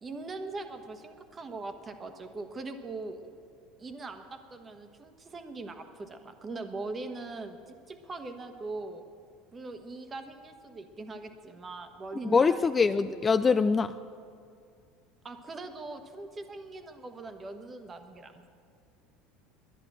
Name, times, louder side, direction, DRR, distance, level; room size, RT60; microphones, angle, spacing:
voice 1, 0.0-3.2 3.8-9.0 9.5-13.2 15.2-18.5, right 3 dB, 25° right, 7 dB, 1.3 m, -41 dB
voice 2, 12.3-14.0, left 5 dB, 25° left, 12 dB, 0.3 m, -23 dB
11.0 x 10.5 x 7.4 m, 2.3 s
supercardioid pair, 105°, 0 cm